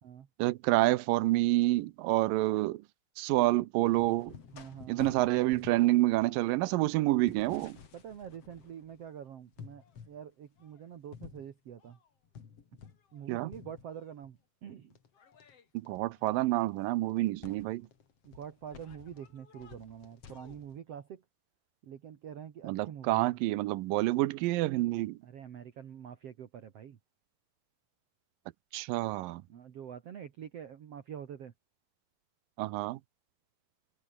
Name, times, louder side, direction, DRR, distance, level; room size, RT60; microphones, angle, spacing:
voice 1, 0.4-2.8 3.2-4.4 4.9-7.8 13.3-13.5 15.7-17.9 22.6-25.2 28.7-29.4 32.6-33.0, right 18 dB, 85° right, 2.5 m, -28 dB
sound 1, 3.9-9.1 9.5-10.2 10.6-13.2 13.5-14.3 14.9-20.8, left 6 dB, 45° left, 3.4 m, -52 dB
voice 2, 4.5-5.0 7.9-12.0 13.1-15.0 18.2-21.2 21.8-23.4 25.2-27.0 29.5-31.5, right 8 dB, 55° right, 2.3 m, -46 dB
omnidirectional pair, 3.9 m